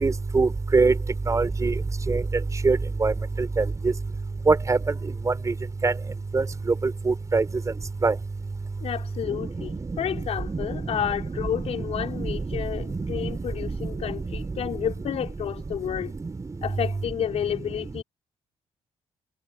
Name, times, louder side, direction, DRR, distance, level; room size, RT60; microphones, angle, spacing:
voice 1, 0.0-0.9 1.3-1.7 2.1-2.2 2.6-2.8 3.0-3.1 4.5-4.8 5.8-5.9 6.3-6.4 7.1-7.4 8.0-8.1 10.5-10.6 12.2-12.3 13.2-13.3, right 3 dB, 30° right, 5.4 m, -21 dB
voice 2, 8.8-16.1 16.6-18.0, left 9 dB, 70° left, 5.7 m, -30 dB
cardioid pair, 85°, 11 cm